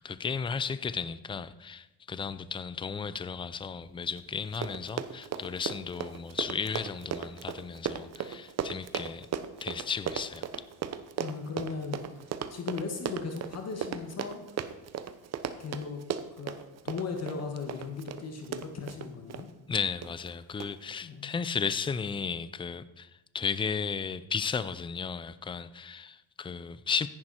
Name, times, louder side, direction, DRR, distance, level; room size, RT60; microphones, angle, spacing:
voice 1, 0.0-9.3 9.6-10.5 19.7-23.1 23.3-27.1, left 6 dB, 15° left, 0.4 m, -34 dB
Run, 4.2-4.3 4.5-19.5 20.0-20.3 20.6-20.7, right 9 dB, 40° right, 0.9 m, -36 dB
voice 2, 11.2-12.0 12.5-14.4 15.6-16.0 16.4-16.6 16.8-19.5 21.0-21.3, left 5 dB, 40° left, 1.9 m, -37 dB
14.5 x 10.5 x 4.4 m
cardioid pair, 125°, 38 cm